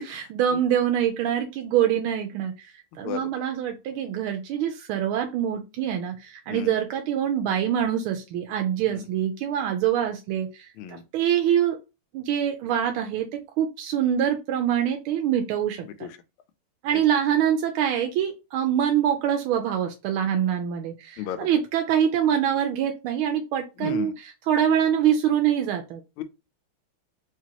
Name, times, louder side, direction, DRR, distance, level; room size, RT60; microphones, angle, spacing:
voice 1, 0.0-11.8 12.1-16.1 16.8-26.0, right 9 dB, 85° right, 1.5 m, -25 dB
voice 2, 3.0-3.2 6.5-6.7 10.8-11.0 21.2-21.4 23.8-24.1, left 10 dB, 80° left, 1.5 m, -31 dB
4.9 x 2.9 x 2.8 m
omnidirectional pair, 2.3 m